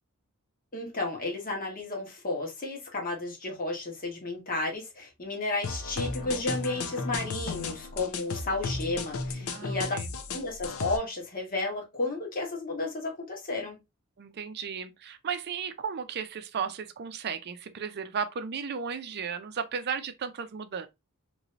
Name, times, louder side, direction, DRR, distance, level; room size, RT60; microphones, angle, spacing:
voice 1, 0.7-9.9 10.3-13.8, left 2 dB, 40° left, 1.2 m, -33 dB
sound 1, 5.6-11.0, left 3 dB, 70° left, 0.5 m, -34 dB
voice 2, 9.4-10.1 14.2-20.9, right 6 dB, 50° right, 0.5 m, -35 dB
3.0 x 2.7 x 2.9 m
head